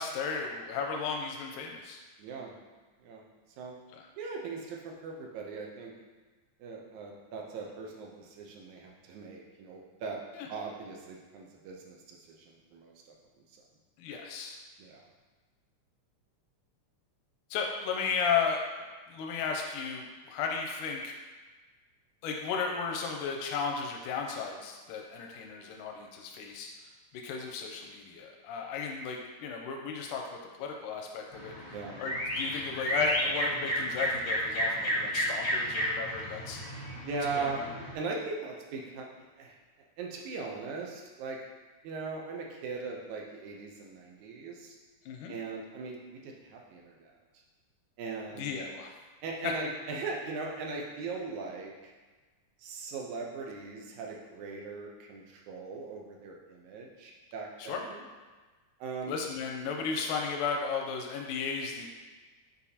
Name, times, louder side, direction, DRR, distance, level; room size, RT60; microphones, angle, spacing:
voice 1, 0.0-2.0 3.9-4.0 10.4-10.5 14.0-14.6 17.5-18.6 19.1-21.1 22.2-26.7 27.2-30.2 30.6-31.5 32.0-36.6 37.4-37.7 45.1-45.3 48.4-48.9 49.4-49.5 57.6-57.8 59.1-61.9, left 5 dB, 90° left, 1 dB, 2.1 m, -34 dB
voice 2, 2.2-2.5 3.0-3.2 3.6-3.8 4.2-5.9 6.6-10.2 10.5-13.2 14.8-15.0 31.7-32.0 37.0-37.6 37.9-39.1 39.4-39.6 40.0-41.4 41.8-44.7 45.3-47.1 48.0-48.6 49.2-51.9 52.6-58.0 58.8-59.2, right 4 dB, 75° right, 0 dB, 2.1 m, -39 dB
sound 1, 31.3-37.9, equal, 50° left, 1.0 m, -32 dB
8.2 x 4.2 x 2.8 m, 1.3 s
omnidirectional pair, 3.6 m